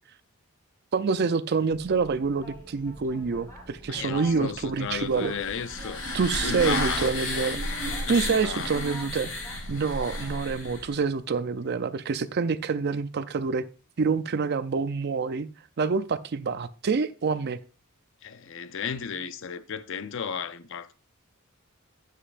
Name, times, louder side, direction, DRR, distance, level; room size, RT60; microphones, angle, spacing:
voice 1, 0.9-5.3 6.1-9.3 9.7-13.7 14.0-15.5 15.8-17.6, right 5 dB, 50° right, 0.5 m, -27 dB
Boat Water vehicle, 1.7-10.9, right 1 dB, 10° left, 2.8 m, -47 dB
voice 2, 3.9-6.0 6.4-7.6 8.0-8.7 18.2-20.9, left 6 dB, 60° left, 0.6 m, -34 dB
sound 1, 5.1-10.9, left 1 dB, 85° left, 4.7 m, -32 dB
10.0 x 7.5 x 2.5 m
head